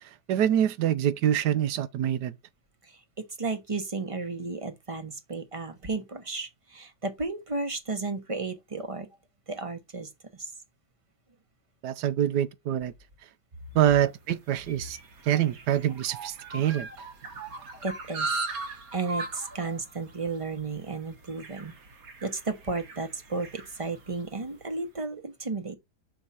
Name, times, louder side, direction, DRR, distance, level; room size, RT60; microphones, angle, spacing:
voice 1, 0.3-2.3 11.8-12.9 13.7-15.0 15.2-16.9, right 10 dB, 80° right, 1.3 m, -25 dB
voice 2, 2.8-9.1 9.5-10.5 17.8-18.4 18.7-21.7 22.2-25.8, right 3 dB, 25° right, 0.8 m, -33 dB
sound 1, 14.0-24.6, right 3 dB, 60° right, 1.7 m, -39 dB
6.3 x 4.8 x 4.2 m
omnidirectional pair, 1.8 m